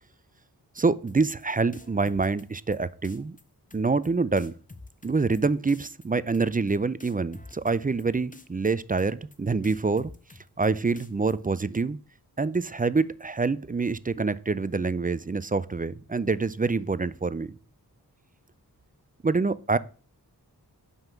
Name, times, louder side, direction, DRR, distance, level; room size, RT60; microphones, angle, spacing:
voice 1, 0.8-3.4 3.7-4.5 5.0-10.1 10.6-12.0 12.4-17.5 19.2-19.8, right 4 dB, 20° right, 0.4 m, -26 dB
sound 1, 1.1-1.4 1.7-2.8 3.0-3.4 3.7-4.1 4.4-5.4 5.7-6.1 6.3-6.7 7.0-8.0 8.3-8.7 9.0-9.4 9.6-10.7 11.0-11.3, left 2 dB, 20° left, 0.9 m, -48 dB
5.7 x 5.5 x 6.9 m
wide cardioid pair, 65°, 39 cm